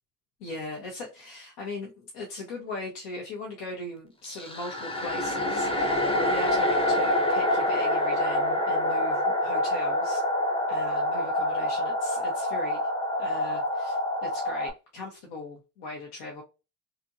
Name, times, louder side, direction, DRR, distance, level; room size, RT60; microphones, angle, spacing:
voice 1, 0.4-10.2 10.7-12.8 13.2-16.4, left 2 dB, 85° left, 0.8 m, -39 dB
sound 1, 4.2-14.7, left 1 dB, 15° left, 0.5 m, -26 dB
2.8 x 2.5 x 2.3 m
supercardioid pair, 70°, 45 cm